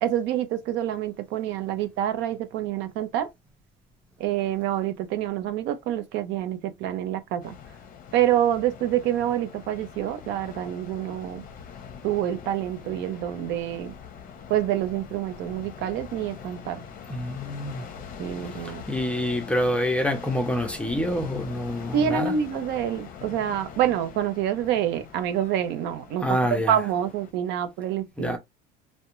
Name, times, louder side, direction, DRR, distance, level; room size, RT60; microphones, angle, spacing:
voice 1, 0.0-3.3 4.2-7.6 8.1-11.5 12.0-14.0 14.5-16.8 18.2-18.8 21.9-28.4, right 10 dB, 65° right, 0.6 m, -27 dB
sound 1, 7.4-27.3, left 7 dB, 45° left, 0.6 m, -43 dB
voice 2, 17.1-17.8 18.9-22.4 26.2-26.8 28.2-28.4, equal, 5° left, 0.5 m, -26 dB
2.3 x 2.1 x 2.9 m
supercardioid pair, 110°, 20 cm